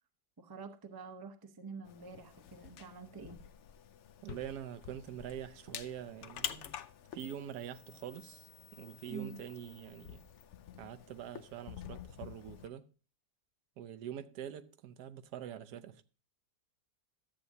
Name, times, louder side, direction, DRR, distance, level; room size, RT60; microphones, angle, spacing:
voice 1, 0.4-3.4 9.1-9.4, right 5 dB, 30° right, 0.4 m, -47 dB
sound 1, 1.8-12.7, left 10 dB, 80° left, 0.6 m, -48 dB
voice 2, 4.2-6.7 7.1-10.3 10.8-12.9 13.8-16.0, right 10 dB, 70° right, 1.2 m, -45 dB
13.0 x 8.2 x 2.7 m
omnidirectional pair, 1.9 m